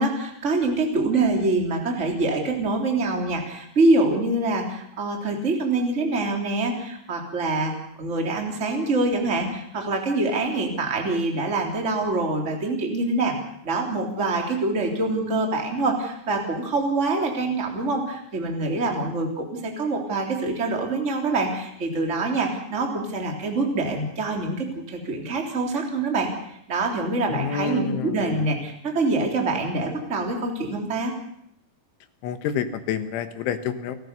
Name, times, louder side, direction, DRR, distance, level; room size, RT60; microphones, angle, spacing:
voice 1, 0.0-7.7 8.0-13.3 13.6-31.1, right 2 dB, 15° right, 1 dB, 3.1 m, -25 dB
voice 2, 27.3-28.4 32.2-34.0, left 7 dB, 90° left, 9 dB, 4.0 m, -28 dB
30.0 x 14.5 x 6.8 m, 0.73 s
omnidirectional pair, 5.3 m